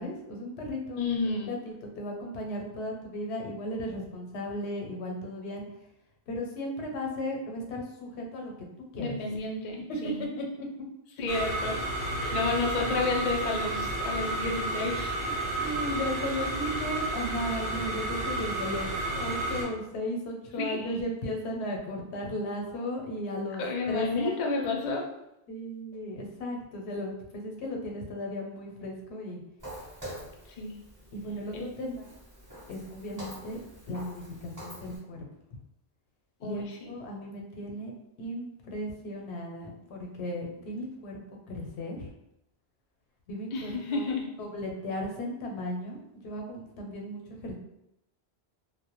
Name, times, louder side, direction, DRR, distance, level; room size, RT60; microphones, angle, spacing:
voice 1, 0.0-1.1 1.5-5.6 6.3-8.5 8.9-9.2 10.4-10.7 12.2-12.6 13.1-13.3 14.9-15.3 15.6-24.8 25.5-29.4 31.1-32.1 32.7-33.6 33.9-35.2 36.4-36.6 36.9-37.9 38.2-42.1 43.3-44.1 44.4-47.5, left 1 dB, 90° left, 1 dB, 0.9 m, -36 dB
voice 2, 1.0-1.5 9.0-10.3 11.2-11.8 12.3-15.1 20.6-21.0 23.6-25.0 30.6-30.8 31.5-31.6 36.4-36.9 43.5-44.3, left 3 dB, 55° left, 0 dB, 0.5 m, -31 dB
sound 1, 11.3-19.6, right 2 dB, 65° right, 0.8 m, -31 dB
Walk footsteps, 29.6-35.0, right 1 dB, 20° right, 0.9 m, -46 dB
2.1 x 2.1 x 2.9 m, 0.84 s
omnidirectional pair, 1.1 m